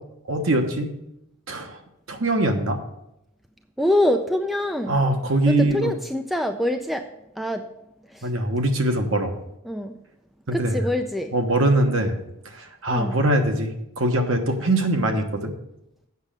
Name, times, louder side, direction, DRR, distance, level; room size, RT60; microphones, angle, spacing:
voice 1, 0.3-0.9 1.5-1.8 2.1-2.8 4.9-5.9 8.2-9.3 10.5-10.9 11.3-12.2 12.4-15.5, right 1 dB, 60° right, 5 dB, 1.2 m, -22 dB
voice 2, 3.8-5.0 5.5-7.1 7.4-7.7 8.1-8.3 9.6-10.0 10.5-11.3 12.9-13.2, left 1 dB, ahead, 6 dB, 0.4 m, -25 dB
8.2 x 6.4 x 6.7 m, 0.84 s
head